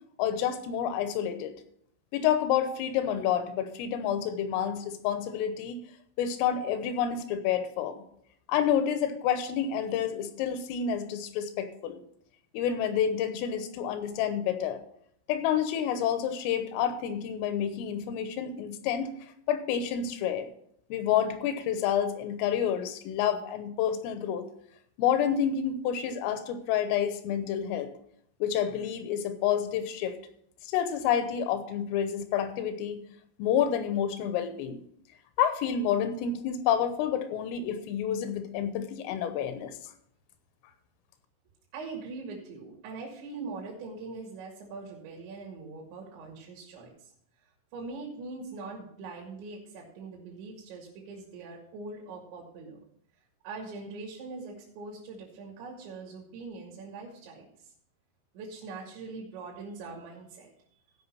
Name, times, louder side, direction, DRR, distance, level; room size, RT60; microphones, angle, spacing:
voice 1, 0.2-1.5 2.1-5.8 6.2-8.0 8.5-12.0 12.5-14.8 15.3-19.1 19.5-20.5 20.9-24.4 25.0-27.9 28.4-30.2 30.6-33.0 33.4-34.8 35.4-39.7, left 9 dB, 85° left, 10 dB, 3.4 m, -29 dB
voice 2, 41.7-47.1 47.7-52.8 53.4-57.5 58.3-60.5, right 3 dB, 70° right, -2 dB, 4.0 m, -42 dB
16.0 x 5.4 x 5.6 m, 0.70 s
omnidirectional pair, 5.9 m